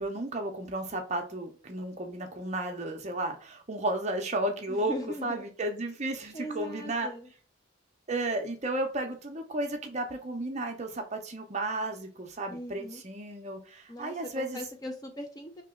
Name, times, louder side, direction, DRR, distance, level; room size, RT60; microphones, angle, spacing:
voice 1, 0.0-4.9 5.2-7.1 8.1-14.6, right 2 dB, 35° right, 0.6 m, -33 dB
voice 2, 4.7-5.5 6.3-7.3 12.5-13.0 13.9-15.6, equal, 20° left, 0.4 m, -39 dB
2.9 x 2.9 x 3.6 m
head